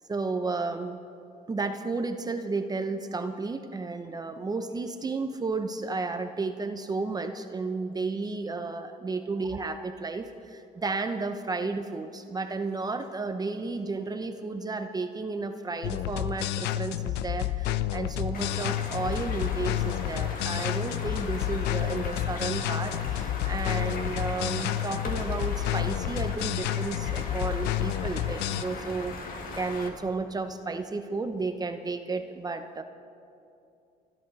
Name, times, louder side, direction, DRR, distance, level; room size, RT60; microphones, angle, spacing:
voice 1, 0.1-1.0 1.5-32.8, right 3 dB, 25° right, 8 dB, 0.8 m, -33 dB
sound 1, 15.8-28.6, left 13 dB, 85° left, 0.6 m, -30 dB
sound 2, 18.3-29.9, left 3 dB, 55° left, 2.1 m, -38 dB
29.0 x 12.0 x 4.1 m, 2.6 s
cardioid pair, 110°, 17 cm